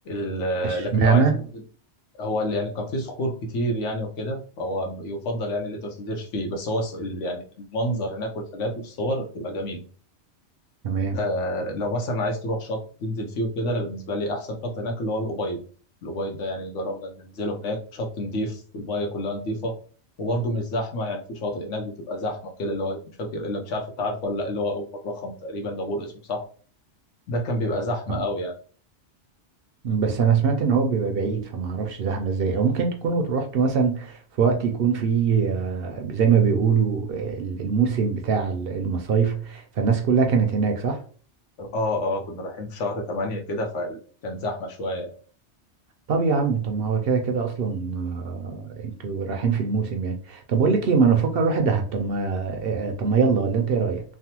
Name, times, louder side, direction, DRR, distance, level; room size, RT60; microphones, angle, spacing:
voice 1, 0.1-1.4 2.2-9.8 11.1-15.6 16.0-19.8 20.2-26.4 27.3-28.5 41.6-44.0 44.2-45.1, left 1 dB, 90° left, 1.1 m, -29 dB
voice 2, 0.6-1.3 10.8-11.2 28.1-28.2 29.8-41.0 46.1-54.0, right 5 dB, 65° right, 0.7 m, -23 dB
3.3 x 2.0 x 2.8 m
omnidirectional pair, 1.2 m